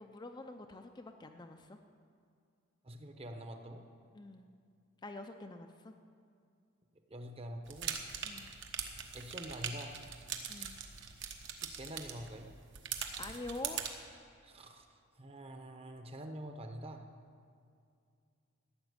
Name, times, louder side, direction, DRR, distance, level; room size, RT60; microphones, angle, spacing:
voice 1, 0.0-1.8 4.1-4.5 5.0-5.9 8.2-8.5 10.5-10.8 13.2-13.8, left 2 dB, 20° left, 5 dB, 0.5 m, -46 dB
voice 2, 2.8-3.9 7.1-8.0 9.1-10.0 11.5-12.5 14.4-17.1, right 1 dB, 30° right, 5 dB, 1.0 m, -46 dB
sound 1, 7.7-13.9, right 7 dB, 60° right, 1.2 m, -42 dB
14.0 x 7.2 x 9.6 m, 2.3 s
head